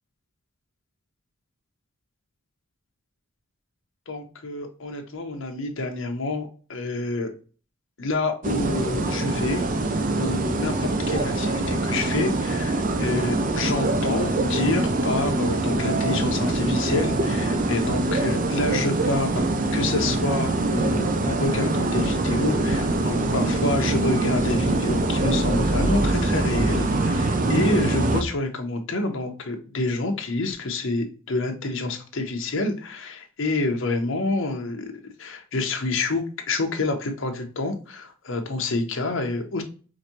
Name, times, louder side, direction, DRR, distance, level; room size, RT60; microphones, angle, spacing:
voice 1, 4.1-7.3 8.0-9.6 10.2-39.6, left 2 dB, 65° left, 4 dB, 0.8 m, -28 dB
sound 1, 8.4-28.2, right 2 dB, 40° right, 0.5 m, -24 dB
4.9 x 2.6 x 2.8 m, 0.38 s
head